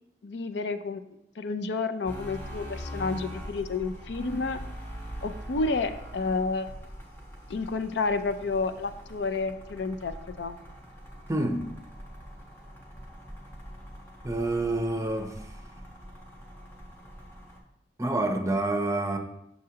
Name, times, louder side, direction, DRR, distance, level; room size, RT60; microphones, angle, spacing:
voice 1, 0.2-1.0 1.4-4.6 5.2-6.7 7.5-10.6, left 3 dB, 85° left, 10 dB, 0.5 m, -30 dB
sound 1, 2.1-17.6, equal, 15° left, 1.1 m, -43 dB
voice 2, 11.3-11.7 14.2-15.3 18.0-19.2, right 2 dB, 20° right, 4 dB, 0.6 m, -27 dB
7.7 x 6.6 x 2.8 m, 0.81 s
head